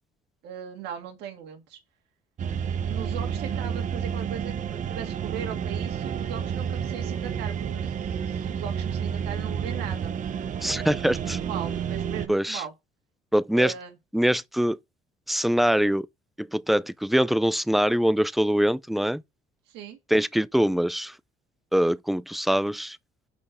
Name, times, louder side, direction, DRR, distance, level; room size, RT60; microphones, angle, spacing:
voice 1, 0.4-1.8 2.8-10.1 11.1-12.7 13.5-13.9 19.7-20.0, right 8 dB, 90° right, 1.8 m, -38 dB
sound 1, 2.4-12.3, right 8 dB, 50° right, 0.8 m, -30 dB
voice 2, 10.6-11.4 12.3-12.6 13.3-13.7 14.1-14.8 15.3-16.1 16.4-19.2 20.1-21.1 21.7-23.0, equal, ahead, 0.4 m, -23 dB
6.2 x 5.4 x 5.1 m
cardioid pair, 110°, 17 cm